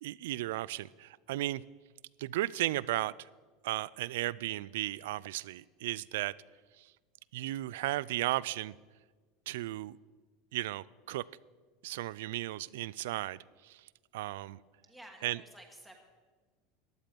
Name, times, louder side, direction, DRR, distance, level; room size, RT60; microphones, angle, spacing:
voice 1, 0.0-1.6 2.2-3.3 3.6-6.3 6.8-6.9 7.3-8.7 9.5-10.0 10.5-11.2 11.8-13.8 14.1-14.6 15.2-15.4, right 16 dB, 80° right, 22 dB, 0.3 m, -35 dB
voice 2, 14.9-16.0, right 1 dB, ahead, 2 dB, 1.3 m, -53 dB
15.0 x 11.0 x 5.2 m, 1.4 s
supercardioid pair, 175°, 0 cm